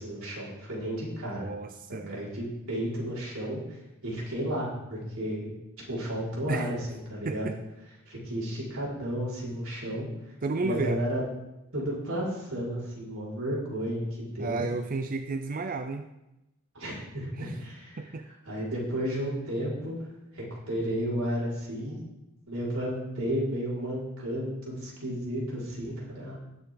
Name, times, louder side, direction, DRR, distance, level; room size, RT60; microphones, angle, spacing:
voice 1, 0.0-1.5 1.9-5.5 5.9-7.5 8.1-10.1 10.6-11.2 11.7-14.6 16.7-18.0 18.5-20.0 20.3-22.0 22.5-26.4, equal, 90° right, -6 dB, 5.2 m, -33 dB
voice 2, 1.3-2.2 6.5-6.7 7.2-7.6 10.4-11.0 14.4-16.1 17.4-17.5 18.0-18.3, right 3 dB, 40° right, 7 dB, 0.5 m, -32 dB
19.0 x 7.0 x 3.9 m, 0.93 s
head